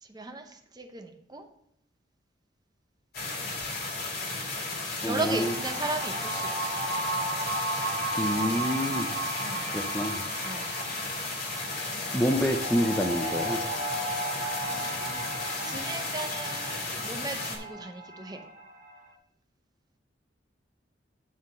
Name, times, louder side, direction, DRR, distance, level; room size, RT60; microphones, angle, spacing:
voice 1, 0.0-1.5 5.0-6.9 9.4-9.7 10.4-10.7 14.3-15.2 15.6-18.4, right 3 dB, 20° right, 5 dB, 0.8 m, -37 dB
sound 1, 3.1-17.6, left 3 dB, 60° left, 2.2 m, -34 dB
voice 2, 5.0-5.5 8.2-9.1 9.7-10.2 12.1-13.6, equal, 10° left, 3 dB, 0.5 m, -27 dB
sound 2, 5.3-19.0, right 1 dB, 45° right, 1.8 m, -35 dB
9.7 x 3.7 x 6.2 m, 0.74 s
head